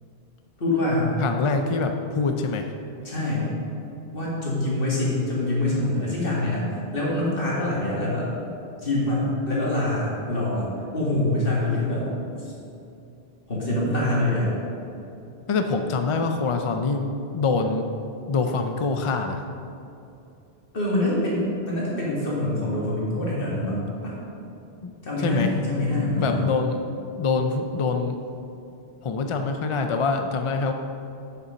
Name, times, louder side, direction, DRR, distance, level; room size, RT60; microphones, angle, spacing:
voice 1, 0.6-1.1 3.0-3.5 4.1-6.7 6.9-8.3 8.8-12.1 12.4-12.5 13.5-14.5 20.7-24.1 25.0-26.4, left 1 dB, 60° left, -6 dB, 2.3 m, -25 dB
voice 2, 1.2-2.7 15.5-17.1 17.3-17.8 18.3-19.4 24.8-24.9 25.2-25.5 26.1-26.8 27.2-28.2 29.0-30.7, left 4 dB, 45° left, 5 dB, 0.4 m, -24 dB
7.0 x 6.9 x 5.2 m, 2.7 s
omnidirectional pair, 1.0 m